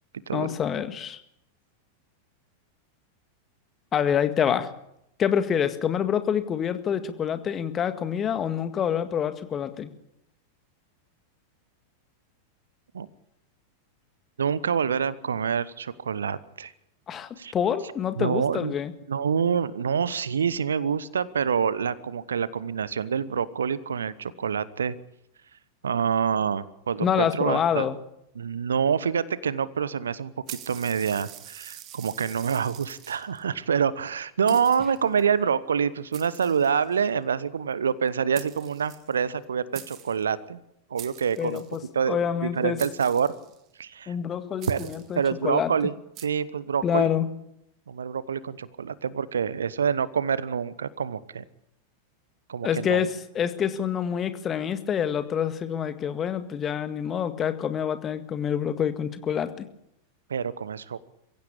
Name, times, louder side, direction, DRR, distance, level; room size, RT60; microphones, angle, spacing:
voice 1, 0.3-1.2 3.9-4.7 5.2-9.9 17.1-18.9 27.0-28.0 41.4-42.8 44.1-45.7 46.8-47.3 52.6-59.7, left 8 dB, 25° left, 11 dB, 1.8 m, -27 dB
voice 2, 14.4-16.7 17.4-17.5 18.2-18.7 19.1-25.0 25.8-27.9 28.4-40.6 40.9-41.6 41.9-43.3 43.8-44.1 44.7-45.9 46.2-47.1 47.9-51.4 52.5-53.0 60.3-61.1, right 7 dB, 70° right, 19 dB, 1.0 m, -26 dB
sound 1, 30.5-33.4 34.1-34.2 34.5-35.2 36.1-37.1 38.1-38.2 38.3-39.4 39.7-40.2 41.0-41.8 42.8-43.7 44.6-45.2 46.1-46.3, right 12 dB, 35° right, 2.1 m, -45 dB
23.5 x 16.0 x 8.7 m, 0.80 s
figure-of-eight pair, 90°, 0 cm